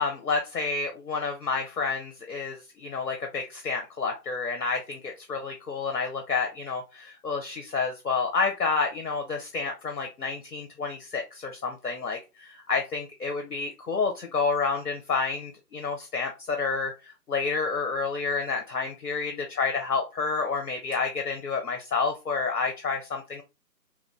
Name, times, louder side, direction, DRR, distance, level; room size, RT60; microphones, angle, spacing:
voice 1, 0.0-23.4, left 4 dB, 65° left, 3 dB, 0.8 m, -29 dB
3.1 x 2.5 x 3.2 m, 0.26 s
figure-of-eight pair, 155°, 49 cm